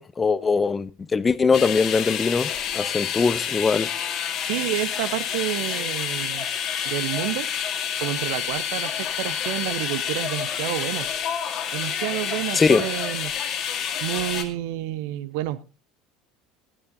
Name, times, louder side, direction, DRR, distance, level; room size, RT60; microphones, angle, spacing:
voice 1, 0.0-2.5 2.7-3.9 12.5-12.8, left 4 dB, 25° left, 0.8 m, -21 dB
sound 1, 1.5-14.4, left 8 dB, 50° left, 2.0 m, -28 dB
voice 2, 4.4-6.5 6.8-7.5 8.0-11.1 11.7-13.3 14.0-15.6, right 15 dB, 65° right, 0.7 m, -29 dB
12.0 x 12.0 x 3.9 m
figure-of-eight pair, 65°, 0 cm